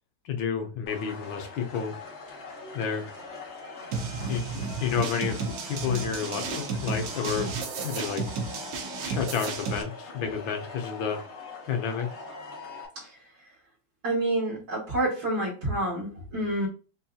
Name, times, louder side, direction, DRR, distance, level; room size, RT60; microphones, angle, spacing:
voice 1, 0.2-1.9 2.7-3.1 4.3-7.5 7.8-8.2 8.7-11.2 11.7-12.1, left 7 dB, 90° left, 4 dB, 1.6 m, -30 dB
sound 1, 0.9-12.9, left 3 dB, 45° left, 1.2 m, -42 dB
sound 2, 3.9-9.8, right 5 dB, 80° right, 1.5 m, -33 dB
voice 2, 14.0-16.7, right 1 dB, 55° right, -8 dB, 2.0 m, -28 dB
4.7 x 2.8 x 2.3 m, 0.35 s
omnidirectional pair, 2.1 m